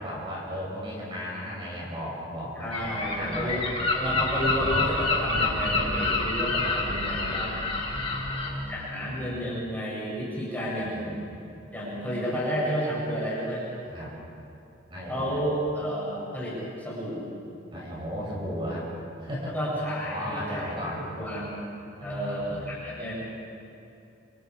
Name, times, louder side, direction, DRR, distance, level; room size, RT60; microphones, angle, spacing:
voice 1, 0.0-3.6 7.9-9.4 10.8-11.2 13.8-14.1 14.9-15.4 17.7-19.6 20.0-21.0 22.0-23.0, equal, 25° right, -5 dB, 6.8 m, -36 dB
voice 2, 2.6-3.6 3.9-7.7 8.7-11.2 11.7-13.6 15.1-17.3 19.5-21.5 22.0-23.1, equal, 10° left, -7 dB, 7.9 m, -31 dB
Gull seagull, 2.7-8.5, left 2 dB, 30° left, 3.4 m, -28 dB
28.0 x 28.0 x 4.9 m, 2.7 s
head